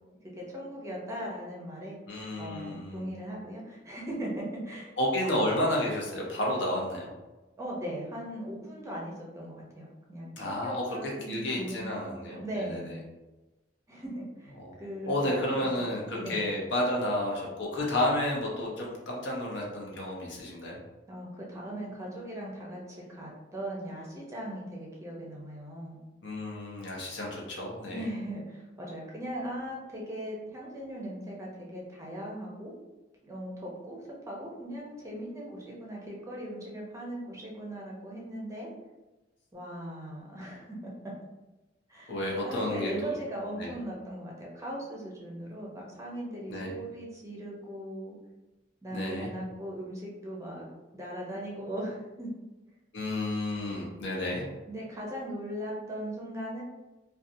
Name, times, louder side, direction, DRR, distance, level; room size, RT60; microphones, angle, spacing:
voice 1, 0.2-2.0 2.4-4.9 7.6-12.9 13.9-15.1 15.4-16.4 21.1-26.0 27.9-32.7 33.2-34.0 34.2-38.7 39.5-41.1 41.9-48.2 48.8-50.7 50.9-52.3 54.7-56.6, right 1 dB, 15° right, -3 dB, 0.6 m, -39 dB
voice 2, 2.1-3.1 5.0-7.1 10.4-13.0 14.6-14.7 15.0-20.8 26.2-28.0 42.1-43.1 43.5-43.7 46.5-46.7 48.9-49.3 52.9-54.5, left 1 dB, 65° left, -2 dB, 0.7 m, -31 dB
2.6 x 2.3 x 2.6 m, 1.1 s
head